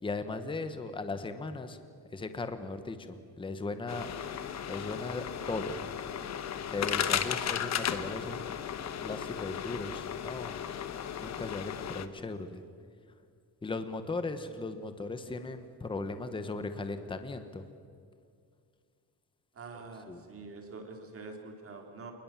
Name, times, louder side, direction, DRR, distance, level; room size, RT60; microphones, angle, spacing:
voice 1, 0.0-1.8 2.1-4.1 4.7-5.8 6.7-8.6 9.0-10.6 11.2-12.6 13.6-17.6 19.7-20.2, left 3 dB, 15° left, 9 dB, 1.1 m, -37 dB
sound 1, 3.9-12.1, left 9 dB, 45° left, 1.1 m, -35 dB
voice 2, 19.5-22.1, right 4 dB, 35° right, 3 dB, 3.2 m, -45 dB
27.5 x 20.5 x 7.4 m, 2.2 s
cardioid pair, 175°, 39 cm